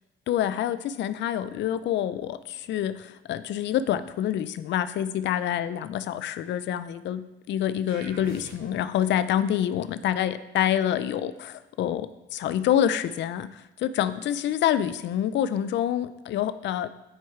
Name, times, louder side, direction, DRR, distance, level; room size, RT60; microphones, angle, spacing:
voice 1, 0.3-16.9, left 10 dB, 65° left, 13 dB, 0.4 m, -27 dB
sound 1, 7.9-9.0, right 3 dB, 70° right, 2.7 m, -45 dB
10.0 x 4.6 x 4.7 m, 1.0 s
cardioid pair, 90°, 20 cm